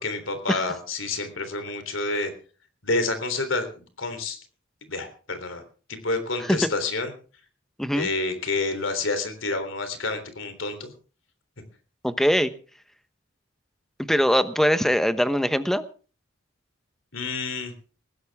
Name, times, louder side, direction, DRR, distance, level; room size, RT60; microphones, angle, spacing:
voice 1, 0.0-2.3 2.8-4.4 4.9-5.6 5.9-7.1 7.9-10.9 17.1-17.7, left 3 dB, 70° left, 9 dB, 3.5 m, -28 dB
voice 2, 12.0-12.5 14.1-15.8, equal, ahead, 11 dB, 1.0 m, -22 dB
20.5 x 16.0 x 3.6 m, 0.38 s
head